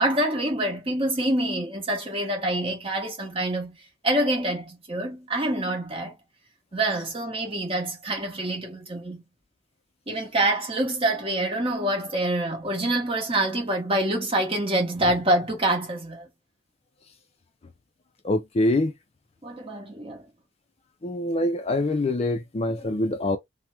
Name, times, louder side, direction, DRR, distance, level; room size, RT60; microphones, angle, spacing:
voice 1, 0.0-6.2 6.7-9.2 10.1-16.3 19.4-20.3, right 1 dB, 30° right, 1.2 m, -26 dB
voice 2, 18.2-18.9 21.0-23.4, left 1 dB, 30° left, 0.4 m, -24 dB
2.9 x 2.1 x 3.2 m
head